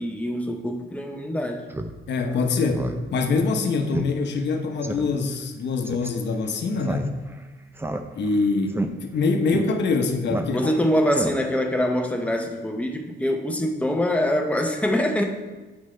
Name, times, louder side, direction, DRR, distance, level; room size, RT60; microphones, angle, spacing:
voice 1, 0.0-1.6 10.5-15.2, equal, 5° left, 3 dB, 0.9 m, -24 dB
Speech synthesizer, 1.7-1.9 2.3-2.4 2.7-3.0 3.3-3.4 3.9-4.1 4.4-4.5 4.8-5.1 5.8-6.1 6.8-7.4 7.8-8.4 8.7-8.9 9.5-9.6 10.3-10.8 11.1-11.6, right 2 dB, 10° right, 0.5 m, -29 dB
voice 2, 2.1-7.2 8.1-10.7, left 4 dB, 60° left, 5 dB, 1.0 m, -24 dB
8.8 x 5.0 x 3.3 m, 1.2 s
cardioid pair, 90°, 20 cm